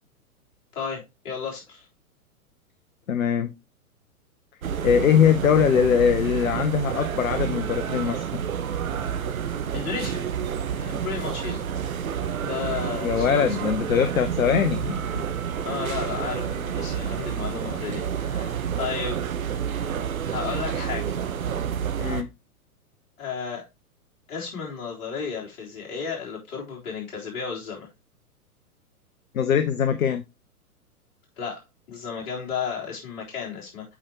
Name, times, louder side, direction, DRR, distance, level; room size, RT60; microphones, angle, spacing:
voice 1, 0.7-1.9 9.7-10.2 10.7-11.7 12.4-13.6 15.6-19.2 20.2-21.2 23.2-23.6 24.3-27.9 31.4-31.6 31.9-33.9, left 6 dB, 45° left, 3.7 m, -33 dB
voice 2, 3.1-3.5 4.8-8.2 13.0-15.1 22.0-22.3 29.3-30.2, left 8 dB, 65° left, 0.8 m, -22 dB
sound 1, 4.6-22.2, right 8 dB, 65° right, 0.9 m, -29 dB
8.7 x 4.8 x 2.9 m
figure-of-eight pair, 110°, 45 cm